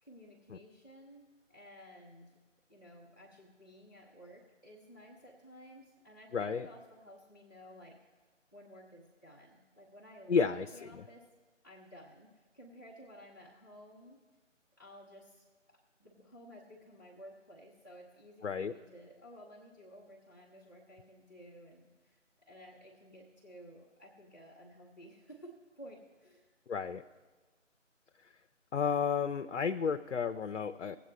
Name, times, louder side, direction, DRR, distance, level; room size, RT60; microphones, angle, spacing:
voice 1, 0.0-2.3 2.7-8.0 8.5-11.2 11.6-14.2 14.8-26.5, equal, 15° left, -8 dB, 0.8 m, -54 dB
voice 2, 6.3-6.7 10.3-11.0 18.4-18.7 26.7-27.0 28.7-31.0, left 6 dB, 65° left, 7 dB, 0.5 m, -32 dB
19.5 x 8.2 x 3.2 m, 1.3 s
figure-of-eight pair, 165°, 38 cm